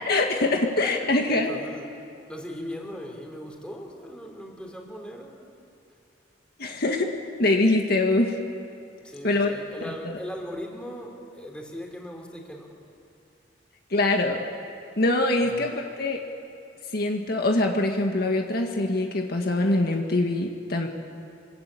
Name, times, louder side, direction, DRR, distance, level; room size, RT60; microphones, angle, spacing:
voice 1, 0.1-1.5 6.6-7.1 7.4-8.3 9.2-9.5 10.1-10.2 13.9-14.4 15.0-16.2 16.9-20.9, left 2 dB, 60° left, 2 dB, 1.8 m, -23 dB
voice 2, 1.3-1.9 2.3-5.6 9.0-12.7 15.4-15.6, equal, 5° left, 1 dB, 3.5 m, -39 dB
25.5 x 22.0 x 8.5 m, 2.6 s
head